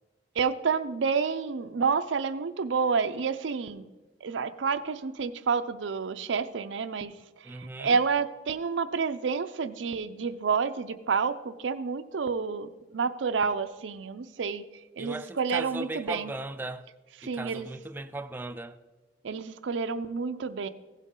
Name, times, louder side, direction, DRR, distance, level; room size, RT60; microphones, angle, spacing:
voice 1, 0.4-3.9 4.2-7.1 7.5-14.6 15.0-16.3 17.2-17.7 19.2-20.7, right 5 dB, 90° right, 0.5 m, -29 dB
voice 2, 7.4-8.0 15.0-16.9 17.2-18.8, right 2 dB, 10° right, 0.3 m, -37 dB
15.5 x 8.2 x 3.7 m
head